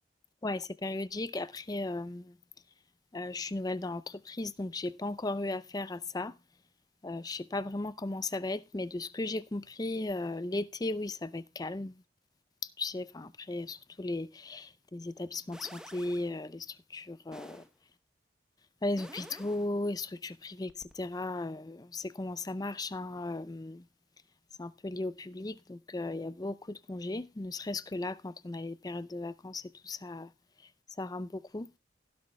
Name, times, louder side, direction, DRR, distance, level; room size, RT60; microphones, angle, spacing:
voice 1, 0.4-2.3 3.1-6.3 7.0-11.9 12.8-17.6 18.8-23.8 24.6-30.3 31.0-31.7, left 2 dB, 20° left, 0.5 m, -36 dB
sound 1, 15.5-16.3 17.3-17.7 19.0-19.7 20.7-20.9, equal, 5° right, 1.0 m, -49 dB
16.5 x 10.5 x 2.3 m
head